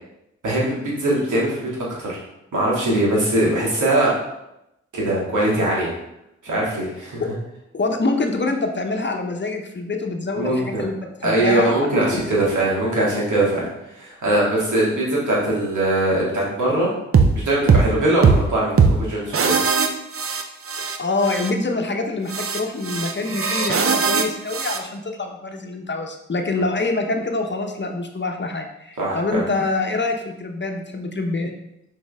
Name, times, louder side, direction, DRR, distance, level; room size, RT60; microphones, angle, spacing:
voice 1, 0.4-1.7 2.0-2.2 2.5-4.1 4.9-5.9 6.4-7.3 10.3-10.8 11.2-16.9 17.3-19.6 26.5-26.6 29.0-29.4, right 1 dB, 75° right, -5 dB, 2.3 m, -21 dB
voice 2, 7.7-11.7 12.1-12.5 20.8-31.5, left 3 dB, 35° left, 3 dB, 1.0 m, -25 dB
sound 1, 17.1-17.3 17.7-17.9 18.2-18.4 18.8-19.0 19.3-21.0 21.2-21.5 22.3-24.8, right 5 dB, 45° right, 0.8 m, -19 dB
6.3 x 4.4 x 3.6 m, 0.86 s
cardioid pair, 45°, 30 cm